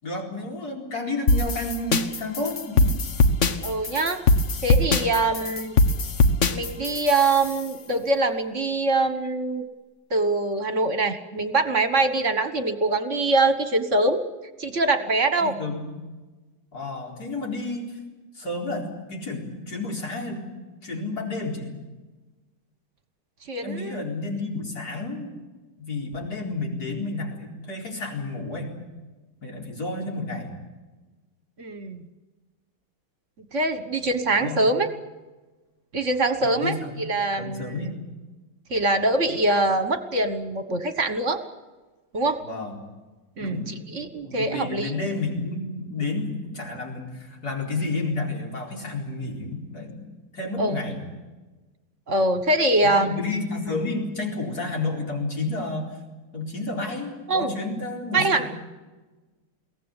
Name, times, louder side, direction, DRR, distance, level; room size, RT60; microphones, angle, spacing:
voice 1, 0.0-2.9 15.4-15.8 16.7-18.0 18.3-20.5 20.8-21.7 23.6-25.3 25.8-28.7 29.4-30.5 34.3-34.6 36.4-36.8 37.4-38.0 42.4-42.8 43.4-43.7 44.2-50.0 50.3-51.0 52.8-55.9 56.3-58.4, left 2 dB, 65° left, 1 dB, 4.9 m, -31 dB
sound 1, 1.3-7.6, left 2 dB, 45° left, 1.4 m, -22 dB
voice 2, 3.6-4.2 4.6-5.7 6.5-9.6 10.1-14.2 14.6-15.5 23.5-24.0 31.6-32.0 33.5-34.9 35.9-37.9 38.7-41.4 42.1-42.4 43.4-44.9 50.6-50.8 52.1-53.2 57.3-57.5 58.1-58.5, right 2 dB, 45° right, 10 dB, 1.7 m, -23 dB
23.0 x 17.5 x 9.8 m, 1.2 s
omnidirectional pair, 1.8 m